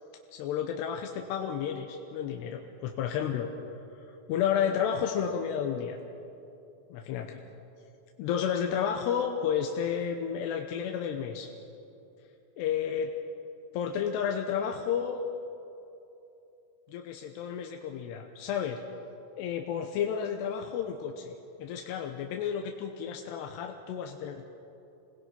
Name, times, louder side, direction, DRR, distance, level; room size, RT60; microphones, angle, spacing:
voice 1, 0.3-3.5 4.1-6.0 6.9-7.4 8.2-11.5 12.6-13.1 13.7-15.2 16.9-18.8 19.4-21.3 21.6-24.5, left 8 dB, 85° left, 3 dB, 3.1 m, -31 dB
28.0 x 20.0 x 5.7 m, 2.8 s
omnidirectional pair, 4.9 m